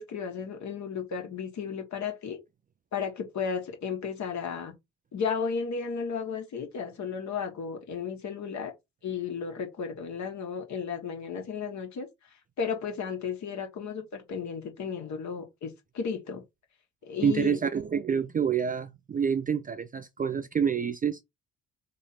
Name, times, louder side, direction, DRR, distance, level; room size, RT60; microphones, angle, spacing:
voice 1, 0.0-2.4 2.9-4.7 5.1-8.7 9.0-12.1 12.6-16.4 17.0-17.6, left 6 dB, 50° left, 1.4 m, -34 dB
voice 2, 17.2-21.2, right 7 dB, 25° right, 0.4 m, -27 dB
3.0 x 2.7 x 4.2 m
hypercardioid pair, 55°, 36 cm